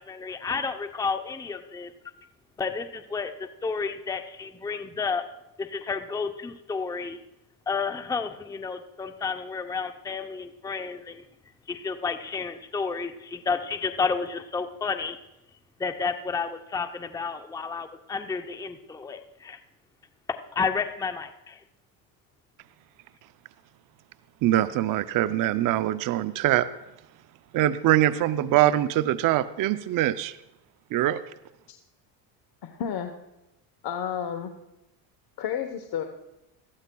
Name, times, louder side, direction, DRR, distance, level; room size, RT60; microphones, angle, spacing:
voice 1, 0.0-1.9 2.6-5.2 5.6-7.2 7.7-11.2 11.7-15.2 15.8-19.6 20.3-21.6, left 5 dB, 10° left, 8 dB, 0.6 m, -31 dB
voice 2, 24.4-26.7 27.5-30.4 30.9-31.2, right 13 dB, 45° right, 13 dB, 0.5 m, -23 dB
voice 3, 32.6-33.1 33.8-34.5 35.4-36.0, left 8 dB, 50° left, 5 dB, 1.1 m, -31 dB
20.0 x 14.0 x 2.3 m, 0.90 s
supercardioid pair, 95°, 49 cm